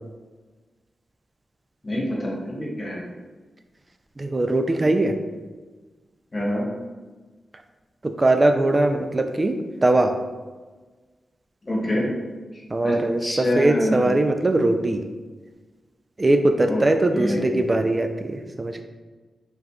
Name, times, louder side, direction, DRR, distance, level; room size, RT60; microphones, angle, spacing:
voice 1, 1.8-3.0 6.3-6.7 11.6-12.1 12.5-14.1 16.7-16.8 17.1-17.7, left 1 dB, 40° left, -3 dB, 1.0 m, -26 dB
voice 2, 4.2-5.1 8.0-9.5 9.8-10.1 12.7-15.0 16.2-18.8, right 2 dB, 35° right, 7 dB, 0.4 m, -21 dB
4.5 x 2.4 x 2.3 m, 1.3 s
supercardioid pair, 40°, 0 cm